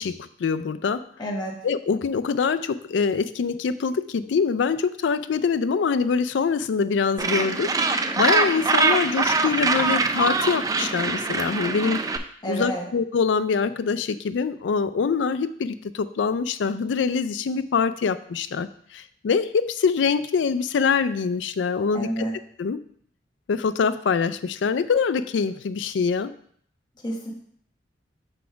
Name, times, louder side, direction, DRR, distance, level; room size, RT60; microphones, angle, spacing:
voice 1, 0.0-1.0 1.6-7.7 8.2-12.0 12.5-22.2 22.6-22.8 23.5-26.3, left 5 dB, 80° left, 14 dB, 0.4 m, -24 dB
voice 2, 1.2-1.6 12.4-12.8 21.9-22.3 27.0-27.3, right 1 dB, 25° left, -1 dB, 1.3 m, -28 dB
Gull seagull, 7.2-12.2, right 3 dB, 20° right, 0.3 m, -23 dB
4.8 x 4.2 x 5.6 m, 0.62 s
head